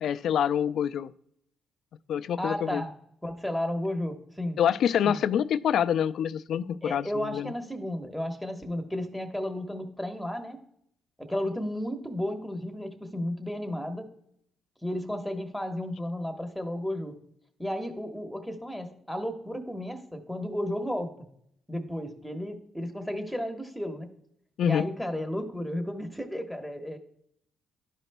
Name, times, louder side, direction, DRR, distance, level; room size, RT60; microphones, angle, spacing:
voice 1, 0.0-1.1 2.1-2.8 4.6-7.5 24.6-24.8, left 9 dB, 70° left, 13 dB, 0.3 m, -26 dB
voice 2, 2.4-2.9 3.2-4.6 5.0-5.2 6.8-10.6 11.2-14.1 14.8-17.2 17.6-21.1 21.7-24.1 24.6-27.0, left 1 dB, ahead, 4 dB, 1.2 m, -33 dB
11.5 x 4.9 x 2.2 m, 0.71 s
cardioid pair, 90°, 0 cm